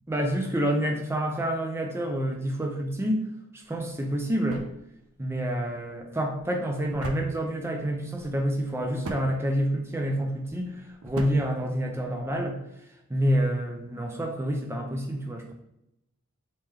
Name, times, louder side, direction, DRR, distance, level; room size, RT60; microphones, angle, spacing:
voice 1, 0.1-3.3 3.5-4.6 5.2-12.6 13.1-15.5, equal, 10° right, 2 dB, 0.4 m, -28 dB
sound 1, 3.6-12.5, right 3 dB, 70° right, 0.5 m, -43 dB
3.6 x 2.8 x 3.2 m, 0.82 s
head